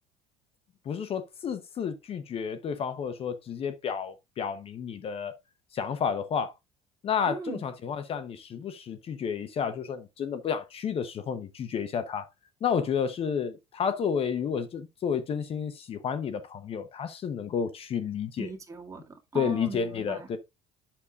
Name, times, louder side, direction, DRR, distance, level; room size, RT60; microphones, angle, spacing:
voice 1, 0.8-5.3 5.7-6.5 7.0-12.3 12.6-18.5 19.3-20.4, left 7 dB, 40° left, 0.9 m, -31 dB
voice 2, 7.3-7.6 18.4-20.3, right 4 dB, 20° right, 2.1 m, -39 dB
8.6 x 6.7 x 2.4 m
supercardioid pair, 105°, 14 cm